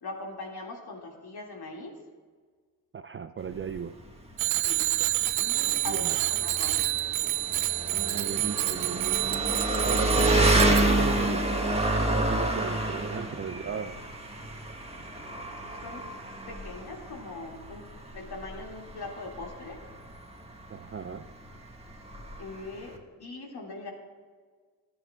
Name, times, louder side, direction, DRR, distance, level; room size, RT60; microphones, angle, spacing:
voice 1, 0.0-2.0 4.6-4.8 5.4-6.8 15.8-16.0 16.5-17.9 18.1-19.8 22.4-23.9, left 3 dB, 55° left, 0 dB, 2.3 m, -41 dB
voice 2, 2.9-4.0 5.9-6.2 7.9-9.4 9.8-11.4 12.1-14.0 20.7-21.3, right 7 dB, 30° right, 10 dB, 0.4 m, -35 dB
Engine, 3.4-23.0, right 1 dB, 15° right, 1.5 m, -29 dB
Bicycle bell, 4.4-10.8, right 17 dB, 80° right, 0.6 m, -28 dB
14.0 x 9.7 x 2.4 m, 1.5 s
hypercardioid pair, 40°, 46 cm